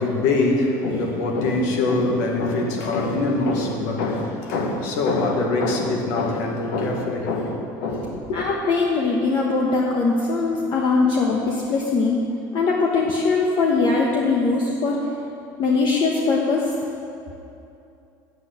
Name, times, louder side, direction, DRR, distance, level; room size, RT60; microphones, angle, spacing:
voice 1, 0.0-8.4, left 2 dB, 85° left, 1.5 m, -23 dB
voice 2, 8.3-12.2 12.5-15.0 15.6-16.7, left 4 dB, 55° left, 1.2 m, -21 dB
8.4 x 8.1 x 8.4 m
supercardioid pair, 100°, 9 cm